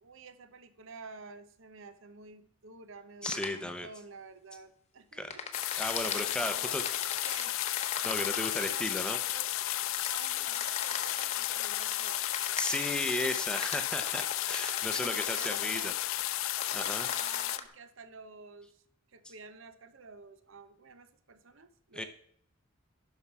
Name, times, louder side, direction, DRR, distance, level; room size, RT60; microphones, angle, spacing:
voice 1, 0.0-5.4 6.0-6.9 7.2-7.6 8.5-9.5 10.1-12.2 14.8-16.0 16.9-18.8 19.1-22.0, right 4 dB, 60° right, 11 dB, 0.7 m, -50 dB
sound 1, 3.2-3.5 5.3-8.7 9.9-12.9 13.6-15.6 16.6-17.6, left 6 dB, 30° left, 1.0 m, -39 dB
voice 2, 3.2-3.9 5.1-5.3 5.7-6.8 8.0-9.2 12.5-15.9 16.7-17.1 21.9-22.0, left 1 dB, 5° left, 7 dB, 0.7 m, -35 dB
sound 2, 5.5-17.6, left 14 dB, 65° left, 0.4 m, -33 dB
11.5 x 5.5 x 4.7 m, 0.67 s
head